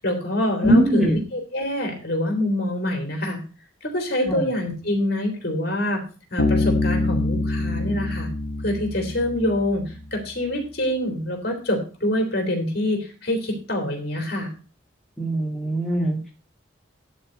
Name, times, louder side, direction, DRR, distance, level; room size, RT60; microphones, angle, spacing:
voice 1, 0.0-3.4 3.8-6.0 6.3-8.3 8.6-14.5, left 1 dB, 50° left, 2 dB, 3.1 m, -25 dB
voice 2, 0.6-1.2 4.3-4.5 15.2-16.3, right 1 dB, ahead, -1 dB, 2.3 m, -21 dB
Bass guitar, 6.4-9.9, left 2 dB, 70° left, 2.2 m, -25 dB
11.5 x 4.4 x 6.4 m, 0.35 s
head